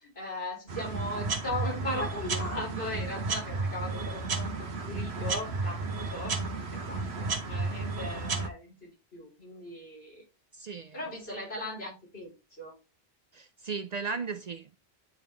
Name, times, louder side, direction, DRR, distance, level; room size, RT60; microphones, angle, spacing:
voice 1, 0.0-6.4 6.7-10.2 10.9-12.7, left 1 dB, 75° left, 4.3 m, -38 dB
sound 1, 0.7-8.5, right 3 dB, 90° right, 1.4 m, -33 dB
voice 2, 10.6-11.0 13.3-14.8, right 5 dB, 50° right, 0.5 m, -36 dB
9.9 x 3.7 x 3.4 m
omnidirectional pair, 1.0 m